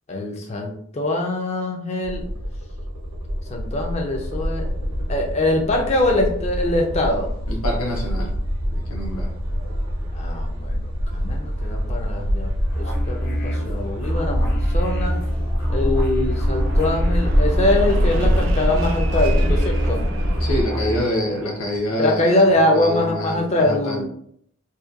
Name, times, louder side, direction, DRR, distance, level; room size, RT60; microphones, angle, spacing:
voice 1, 0.1-2.2 3.5-4.7 5.1-7.3 10.1-12.5 12.8-15.2 15.7-20.1 22.0-24.0, left 1 dB, 30° left, 2 dB, 0.3 m, -23 dB
sound 1, 2.0-20.6, equal, 80° right, 0.7 m, -24 dB
voice 2, 7.5-8.3 8.7-9.3 20.4-24.0, left 1 dB, 75° left, 1 dB, 0.7 m, -26 dB
sound 2, 12.7-21.0, equal, 45° left, 0.7 m, -27 dB
Fixed-wing aircraft airplane, 16.3-21.9, right 2 dB, 55° right, 0.3 m, -35 dB
2.7 x 2.1 x 2.3 m, 0.67 s
head